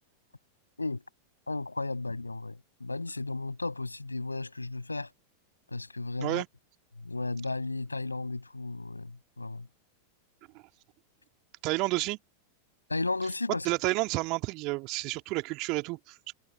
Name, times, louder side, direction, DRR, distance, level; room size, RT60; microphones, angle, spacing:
voice 1, 1.5-5.1 5.7-6.4 7.0-9.7 12.9-13.7, left 3 dB, 80° left, 7.0 m, -34 dB
voice 2, 11.6-12.2 13.6-16.3, right 24 dB, 40° right, 2.5 m, -30 dB
figure-of-eight pair, 90°, 0 cm